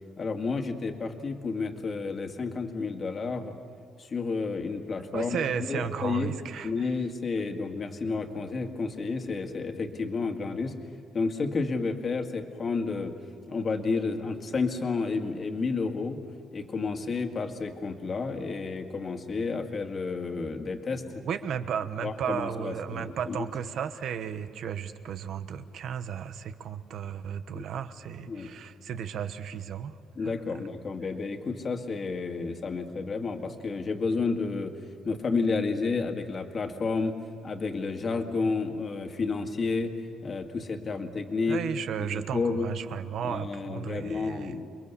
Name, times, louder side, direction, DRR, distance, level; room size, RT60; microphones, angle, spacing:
voice 1, 0.2-3.5 4.0-5.4 5.7-6.3 6.6-10.7 11.1-13.1 13.5-16.2 16.5-21.0 22.0-23.5 27.5-27.6 28.3-28.5 30.2-34.7 35.0-37.2 37.4-39.9 40.2-41.6 42.0-42.7 43.2-44.7, left 4 dB, 35° left, 5 dB, 2.0 m, -31 dB
voice 2, 5.1-6.9 21.1-30.6 41.5-44.6, right 8 dB, 65° right, 10 dB, 1.2 m, -34 dB
29.0 x 22.5 x 7.0 m, 2.2 s
cardioid pair, 125°, 0 cm